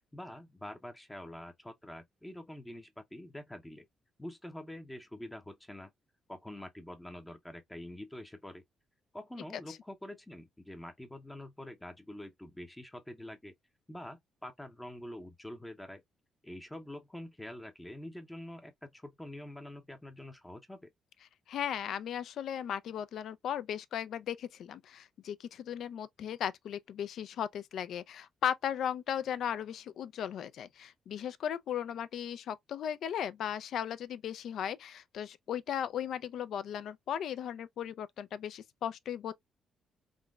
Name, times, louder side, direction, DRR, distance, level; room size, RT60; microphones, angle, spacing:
voice 1, 0.1-3.9 4.2-5.9 6.3-8.6 9.1-13.5 13.9-16.0 16.4-20.9, left 1 dB, 10° left, 0.6 m, -46 dB
voice 2, 21.5-39.3, left 9 dB, 70° left, 0.3 m, -36 dB
3.7 x 2.1 x 2.3 m
cardioid pair, 90°, 0 cm